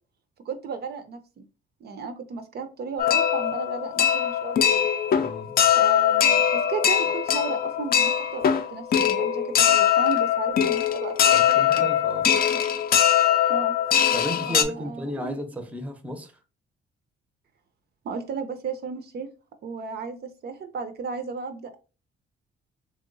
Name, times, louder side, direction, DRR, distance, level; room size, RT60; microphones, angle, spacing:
voice 1, 0.5-1.4 1.8-4.9 5.7-11.8 13.5-13.7 14.5-15.4 18.0-19.3 19.6-21.8, right 5 dB, 55° right, 0.4 m, -34 dB
sound 1, 3.0-14.6, left 9 dB, 50° left, 0.4 m, -21 dB
voice 2, 5.2-5.5 11.3-12.3 14.1-16.3, equal, 5° right, 0.6 m, -34 dB
3.0 x 2.8 x 2.5 m
cardioid pair, 90°, 20 cm